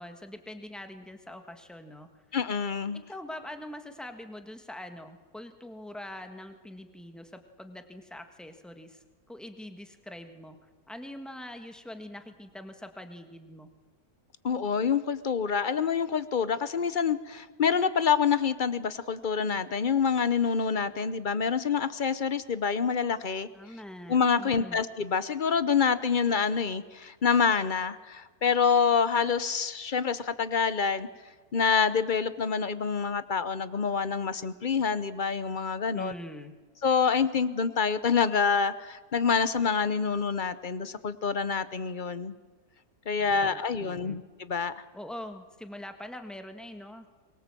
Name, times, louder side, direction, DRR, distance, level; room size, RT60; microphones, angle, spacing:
voice 1, 0.0-2.1 2.9-13.7 23.5-24.8 35.9-36.5 43.1-44.2 44.9-47.1, left 1 dB, ahead, 6 dB, 1.4 m, -44 dB
voice 2, 2.3-3.0 14.4-23.5 24.1-31.1 31.5-36.1 36.8-42.4 43.1-44.2 44.5-44.7, left 6 dB, 45° left, 14 dB, 0.7 m, -27 dB
23.5 x 21.5 x 7.5 m, 1.3 s
omnidirectional pair, 1.7 m